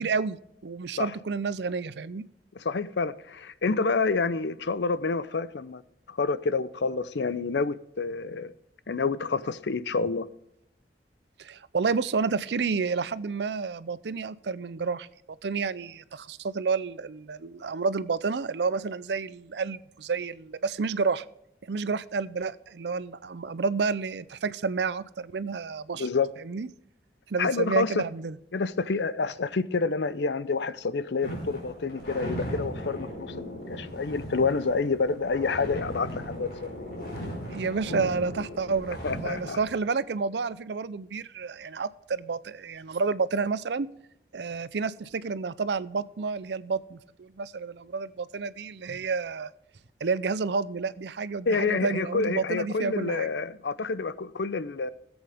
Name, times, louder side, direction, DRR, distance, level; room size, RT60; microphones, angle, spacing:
voice 1, 0.0-2.3 11.4-15.1 15.4-21.2 21.7-26.1 26.4-26.7 27.3-28.4 37.5-43.9 44.3-49.5 50.0-53.3, right 4 dB, 80° right, 17 dB, 0.5 m, -30 dB
voice 2, 2.6-5.8 6.1-8.5 8.9-10.3 26.0-26.3 27.4-28.0 28.5-36.8 39.0-39.6 51.5-54.9, left 4 dB, 85° left, 16 dB, 0.6 m, -28 dB
sound 1, 31.2-39.7, equal, 50° left, 4.6 m, -37 dB
17.5 x 8.0 x 3.5 m, 0.80 s
head